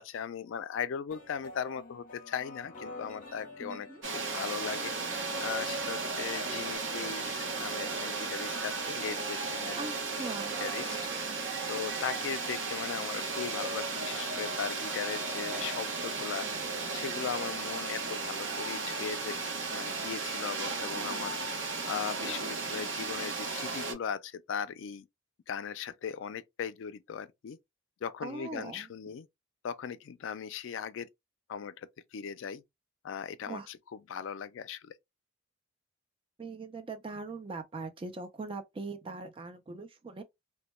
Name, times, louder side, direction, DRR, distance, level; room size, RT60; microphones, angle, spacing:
voice 1, 0.0-9.8 10.1-10.3 10.6-11.0 11.4-21.4 21.9-25.1 25.5-27.6 28.0-29.3 29.6-31.1 31.5-32.6 33.0-34.9, left 7 dB, 65° left, 0.3 m, -38 dB
sound 1, 1.1-6.8, left 2 dB, 40° left, 0.7 m, -47 dB
voice 2, 3.6-4.0 9.7-10.6 28.2-28.9 33.5-33.7 36.4-40.2, right 3 dB, 25° right, 0.3 m, -41 dB
sound 2, 4.0-23.9, right 4 dB, 60° right, 0.7 m, -35 dB
2.2 x 2.1 x 2.9 m
head